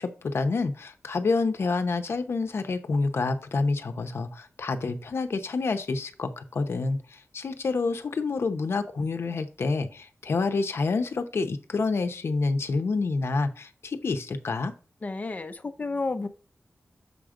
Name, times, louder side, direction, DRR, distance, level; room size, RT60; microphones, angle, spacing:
voice 1, 0.0-14.7, left 3 dB, 70° left, 8 dB, 0.8 m, -28 dB
voice 2, 15.0-16.3, left 3 dB, 35° left, 8 dB, 0.7 m, -31 dB
6.8 x 5.1 x 3.7 m, 0.38 s
wide cardioid pair, 130°, 4 cm